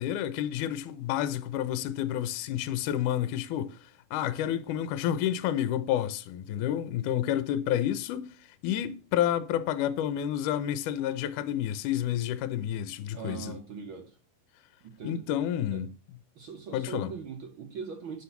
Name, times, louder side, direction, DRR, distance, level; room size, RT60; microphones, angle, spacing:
voice 1, 0.0-3.8 4.1-8.3 8.6-13.6 15.0-15.9 16.7-17.1, left 11 dB, 75° left, 2.2 m, -29 dB
voice 2, 13.1-14.2 14.8-15.3 15.7-15.8 16.3-18.2, right 6 dB, 60° right, 1.4 m, -41 dB
10.5 x 6.8 x 5.8 m
omnidirectional pair, 3.8 m